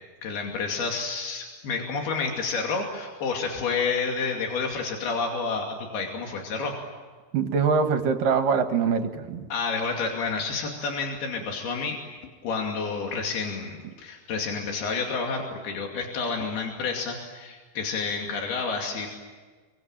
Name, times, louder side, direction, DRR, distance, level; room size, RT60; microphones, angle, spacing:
voice 1, 0.2-6.7 9.5-12.0 12.4-19.1, left 4 dB, 90° left, 1 dB, 4.6 m, -29 dB
voice 2, 7.3-9.5, right 5 dB, 70° right, 6 dB, 3.1 m, -23 dB
27.5 x 24.5 x 8.9 m, 1.4 s
omnidirectional pair, 4.3 m